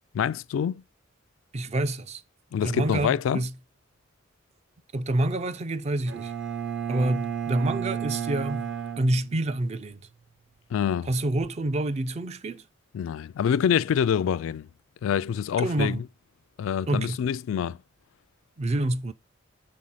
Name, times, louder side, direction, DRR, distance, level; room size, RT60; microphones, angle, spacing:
voice 1, 0.1-0.8 2.5-3.4 10.7-11.1 12.9-14.7 15.0-16.0 16.6-17.8, left 8 dB, 80° left, 0.3 m, -26 dB
voice 2, 1.5-2.2 2.6-3.5 4.9-6.3 6.9-8.7 9.0-10.1 11.1-12.6 15.6-16.0 16.9-17.2 18.6-19.1, right 1 dB, 35° right, 0.4 m, -27 dB
Bowed string instrument, 6.1-9.9, right 8 dB, 60° right, 0.9 m, -32 dB
6.3 x 4.0 x 5.7 m
head